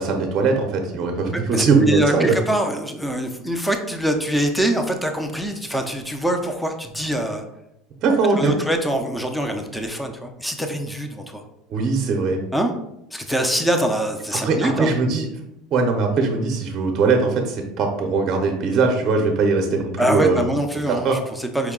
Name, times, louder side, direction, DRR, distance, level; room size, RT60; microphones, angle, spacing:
voice 1, 0.0-2.3 8.0-8.5 11.7-12.4 14.4-15.3 15.7-20.5 20.9-21.2, right 4 dB, 40° right, 3 dB, 0.6 m, -20 dB
voice 2, 1.5-7.4 8.3-11.5 12.5-12.7 13.1-14.9 20.0-21.7, right 1 dB, ahead, 5 dB, 0.5 m, -24 dB
4.6 x 2.2 x 3.6 m, 0.84 s
supercardioid pair, 125°, 0 cm